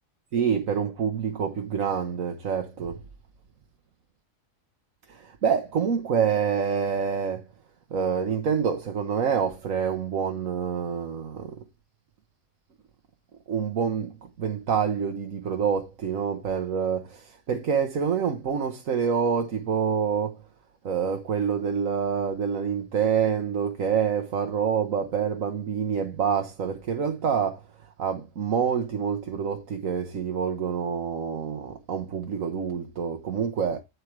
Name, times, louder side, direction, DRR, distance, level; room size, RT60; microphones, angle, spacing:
voice 1, 0.3-3.0 5.1-7.4 7.9-11.6 13.5-20.4 20.8-33.8, right 7 dB, 80° right, 1.5 m, -27 dB
9.6 x 4.6 x 4.7 m
omnidirectional pair, 1.4 m